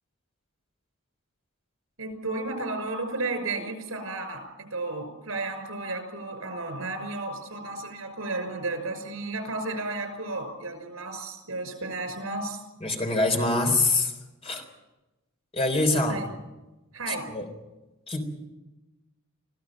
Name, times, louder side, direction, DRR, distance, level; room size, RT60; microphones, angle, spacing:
voice 1, 2.0-4.4 4.7-12.6 16.1-16.3 16.9-17.3, right 2 dB, 80° right, 8 dB, 5.8 m, -33 dB
voice 2, 12.8-14.1 14.4-14.6 15.5-16.2 17.3-17.4 18.1-18.2, left 2 dB, 30° left, 4 dB, 3.6 m, -24 dB
25.0 x 16.0 x 7.5 m, 1.0 s
head